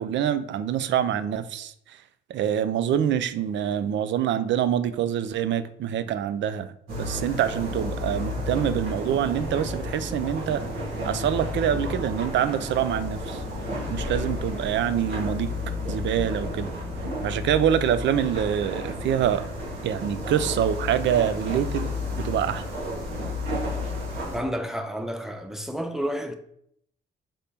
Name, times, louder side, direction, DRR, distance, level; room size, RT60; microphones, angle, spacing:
voice 1, 0.0-1.7 2.3-6.7 7.0-10.6 11.0-13.4 13.9-15.5 15.9-16.7 17.2-19.4 19.8-21.9 22.2-22.6, right 9 dB, 65° right, 0.4 m, -25 dB
sound 1, 6.9-24.4, left 2 dB, 85° right, 1.7 m, -32 dB
voice 2, 24.3-26.3, equal, ahead, 0.6 m, -30 dB
5.2 x 3.4 x 2.8 m
cardioid pair, 90°, 20 cm